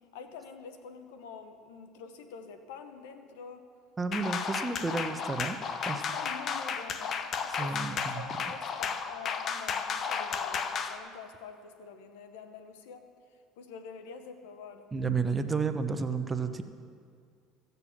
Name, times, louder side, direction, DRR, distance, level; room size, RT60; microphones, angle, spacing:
voice 1, 0.1-3.7 5.9-13.1 13.6-14.9, left 6 dB, 90° left, 8 dB, 1.0 m, -46 dB
voice 2, 4.0-5.6 5.9-6.0 7.6-8.3 14.9-16.6, right 4 dB, 20° right, 8 dB, 0.8 m, -31 dB
sound 1, 4.1-11.0, left 6 dB, 45° left, 0.8 m, -33 dB
15.5 x 6.8 x 7.3 m, 2.2 s
supercardioid pair, 100°, 0 cm